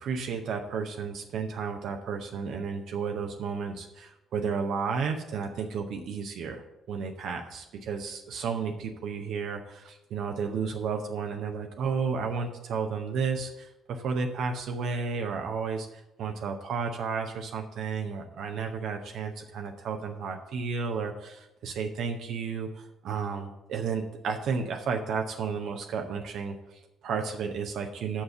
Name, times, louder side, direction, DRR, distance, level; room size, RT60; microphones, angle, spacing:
voice 1, 0.0-28.2, right 5 dB, 60° right, 4 dB, 0.7 m, -32 dB
7.3 x 6.2 x 6.7 m, 0.94 s
figure-of-eight pair, 45°, 0 cm